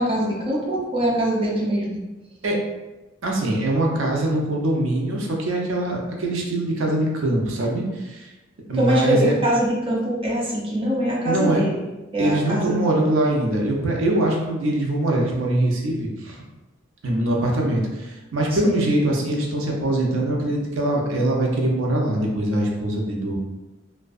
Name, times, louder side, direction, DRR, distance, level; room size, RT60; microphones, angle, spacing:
voice 1, 0.0-2.0 8.8-11.8 12.1-12.9 18.6-18.9, right 1 dB, 30° right, -4 dB, 0.6 m, -23 dB
voice 2, 3.2-8.3 8.7-9.4 11.2-11.6 12.2-16.4 17.0-23.4, right 1 dB, 85° right, -1 dB, 0.5 m, -23 dB
2.6 x 2.1 x 2.3 m, 1.1 s
head